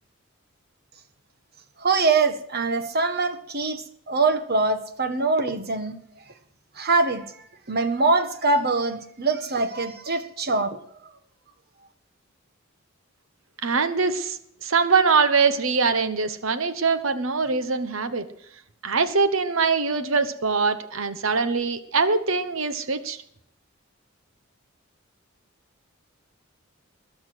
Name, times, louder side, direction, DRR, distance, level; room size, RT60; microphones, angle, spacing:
voice 1, 1.8-6.0 6.7-7.3 7.7-11.1, right 3 dB, 50° right, 8 dB, 1.6 m, -24 dB
voice 2, 13.6-18.2 18.8-23.2, right 4 dB, 75° right, 11 dB, 1.1 m, -23 dB
21.0 x 7.2 x 6.3 m, 0.69 s
head